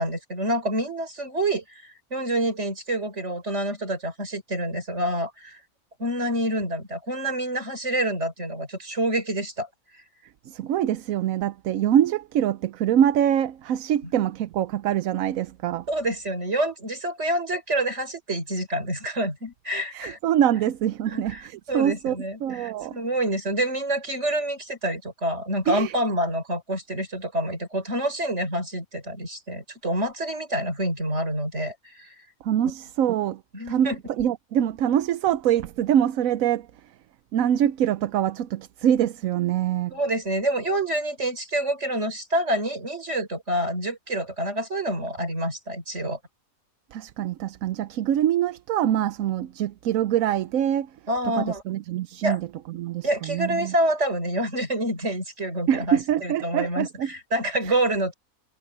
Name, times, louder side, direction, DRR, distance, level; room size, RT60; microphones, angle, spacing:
voice 1, 0.0-5.6 6.0-9.7 15.9-20.2 21.1-21.4 21.7-32.1 33.5-34.0 39.9-46.2 51.1-51.6 52.2-52.4 53.0-58.1, right 1 dB, 55° right, 5.4 m, -27 dB
voice 2, 10.5-15.9 19.9-23.0 25.7-25.9 32.4-33.4 33.7-36.7 37.3-40.0 46.9-50.9 51.2-53.7 55.7-57.1 57.6-57.7, right 10 dB, 75° right, 1.1 m, -24 dB
omnidirectional pair, 1.5 m